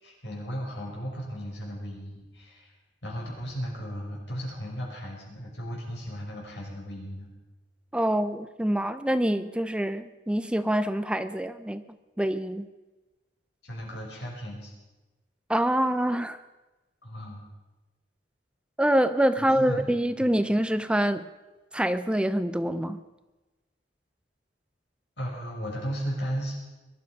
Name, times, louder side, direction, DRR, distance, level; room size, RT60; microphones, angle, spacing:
voice 1, 0.0-2.7 3.0-7.3 13.6-14.7 17.0-17.4 19.4-20.3 25.2-26.6, equal, 80° left, -2 dB, 6.3 m, -35 dB
voice 2, 7.9-11.8 12.2-12.7 15.5-16.4 18.8-21.3 21.7-23.0, right 1 dB, 5° right, 11 dB, 0.5 m, -25 dB
22.0 x 12.0 x 5.3 m, 1.1 s
head